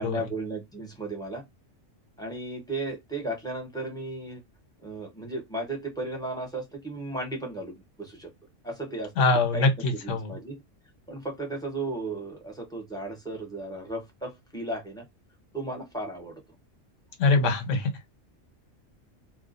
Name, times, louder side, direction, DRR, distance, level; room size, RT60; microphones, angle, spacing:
voice 1, 0.0-1.4 2.2-4.4 4.8-8.3 8.6-9.3 9.5-10.6 11.1-15.1 15.5-16.4, right 2 dB, 5° left, 0.7 m, -35 dB
voice 2, 9.2-10.3 17.2-17.9, left 3 dB, 70° left, 1.1 m, -23 dB
2.3 x 2.3 x 2.4 m
omnidirectional pair, 1.4 m